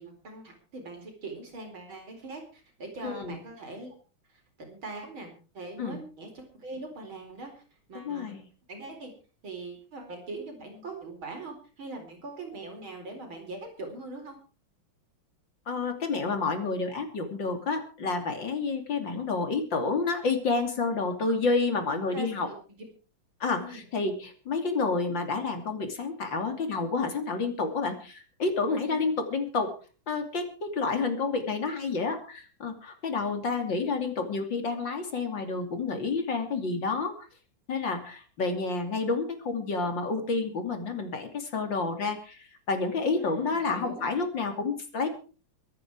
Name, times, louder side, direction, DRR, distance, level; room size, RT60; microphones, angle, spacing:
voice 1, 0.0-3.9 4.6-7.6 7.9-8.4 8.7-9.1 9.4-14.4 22.1-22.5 23.6-23.8 28.7-29.1 43.2-44.0, right 2 dB, 75° right, 4 dB, 5.2 m, -41 dB
voice 2, 3.0-3.4 5.8-6.0 7.9-8.4 15.7-22.5 23.4-29.7 30.1-37.1 37.7-45.1, left 4 dB, 60° left, 6 dB, 3.5 m, -29 dB
23.5 x 9.7 x 4.8 m, 0.38 s
omnidirectional pair, 2.2 m